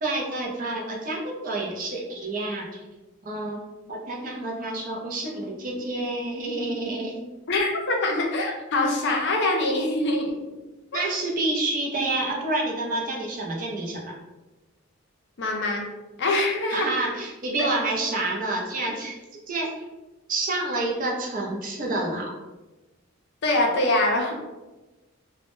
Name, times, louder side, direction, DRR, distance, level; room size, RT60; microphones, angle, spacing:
voice 1, 0.0-2.8 3.3-3.6 3.9-7.2 10.9-14.1 16.7-19.2 19.5-19.8 20.3-22.3, right 2 dB, 40° right, -2 dB, 0.4 m, -28 dB
voice 2, 7.5-10.4 10.9-11.0 15.4-15.8 16.2-16.9 23.4-24.3, left 2 dB, 55° left, 1 dB, 0.5 m, -24 dB
2.1 x 2.0 x 2.9 m, 1.1 s
head